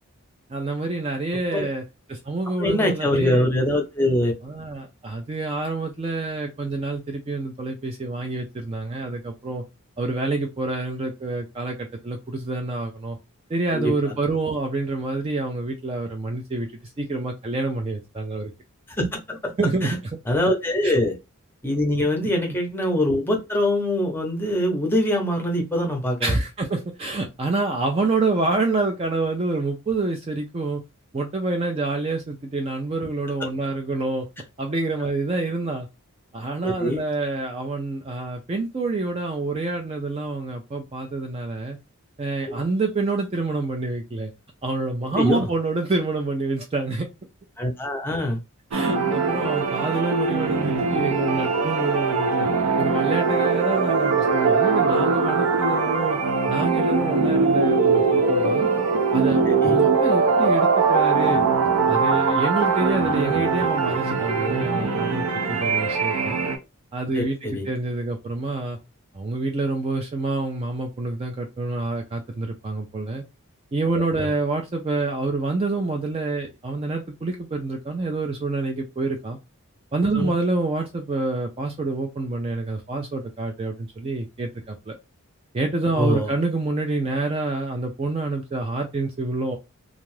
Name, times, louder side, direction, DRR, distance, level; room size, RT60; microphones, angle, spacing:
voice 1, 0.5-1.8 2.1-3.5 4.4-9.6 10.0-13.2 13.5-16.7 17.0-18.5 19.6-19.9 20.8-21.0 26.2-30.8 31.1-34.3 34.6-35.9 36.3-41.8 42.2-44.3 44.6-47.1 48.7-52.5 52.8-56.2 56.5-58.7 59.1-61.4 61.9-66.4 66.9-68.8 69.1-73.2 73.7-79.4 79.9-84.9 85.5-89.6, right 3 dB, 25° right, 3 dB, 0.3 m, -27 dB
voice 2, 2.6-4.3 13.7-13.9 19.0-19.5 19.8-20.0 20.3-21.1 21.6-26.2 36.6-37.0 42.5-42.6 45.1-45.5 47.6-48.4 59.5-59.8 67.1-67.6 73.9-74.3 80.1-80.3 86.0-86.3, left 1 dB, 10° left, 2 dB, 0.6 m, -23 dB
sound 1, 48.7-66.6, right 4 dB, 85° right, 0.6 m, -21 dB
2.5 x 2.3 x 3.2 m, 0.25 s
head